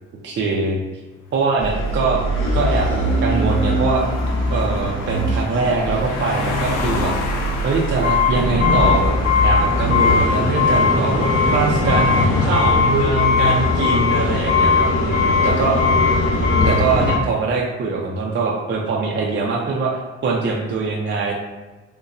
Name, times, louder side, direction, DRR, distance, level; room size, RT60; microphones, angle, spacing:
voice 1, 0.2-0.8 1.3-2.2 2.5-4.1 4.5-7.1 7.6-9.1 9.4-12.1 12.4-15.8 16.6-21.3, right 4 dB, 40° right, -1 dB, 0.5 m, -22 dB
sound 1, 1.4-11.7, left 3 dB, 90° left, 0.5 m, -32 dB
sound 2, 1.6-17.2, left 3 dB, 45° left, 1.1 m, -19 dB
3.9 x 2.2 x 2.5 m, 1.2 s
cardioid pair, 90°, 30 cm